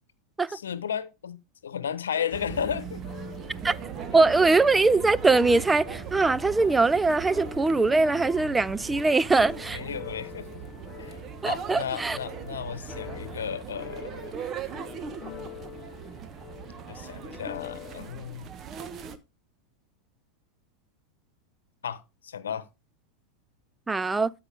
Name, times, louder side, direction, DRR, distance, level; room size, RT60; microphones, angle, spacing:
voice 1, 0.5-3.0 9.7-10.6 11.0-11.2 11.4-14.3 16.9-18.5 21.8-22.7, left 8 dB, 85° left, 0.9 m, -34 dB
sound 1, 2.1-18.1, left 15 dB, 40° left, 0.6 m, -46 dB
sound 2, 2.3-19.2, right 7 dB, 35° right, 1.1 m, -39 dB
voice 2, 4.1-9.8 11.4-12.2 23.9-24.3, right 3 dB, 10° right, 0.4 m, -22 dB
13.0 x 5.4 x 3.5 m
hypercardioid pair, 100°, 0 cm